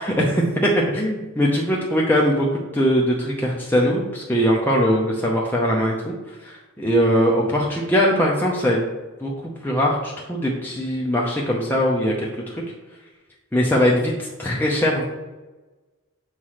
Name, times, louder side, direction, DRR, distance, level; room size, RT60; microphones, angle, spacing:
voice 1, 0.0-8.8 9.2-12.6 13.5-15.0, equal, 10° left, -3 dB, 0.7 m, -21 dB
7.3 x 3.2 x 5.7 m, 1.2 s
head